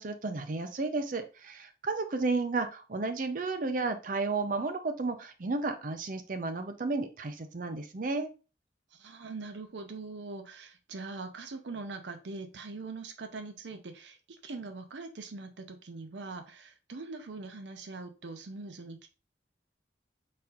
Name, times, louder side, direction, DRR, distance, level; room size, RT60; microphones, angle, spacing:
voice 1, 0.0-8.3, right 3 dB, 50° right, 8 dB, 0.6 m, -32 dB
voice 2, 8.9-19.1, right 3 dB, 90° right, 7 dB, 0.6 m, -42 dB
4.2 x 4.1 x 2.4 m, 0.31 s
head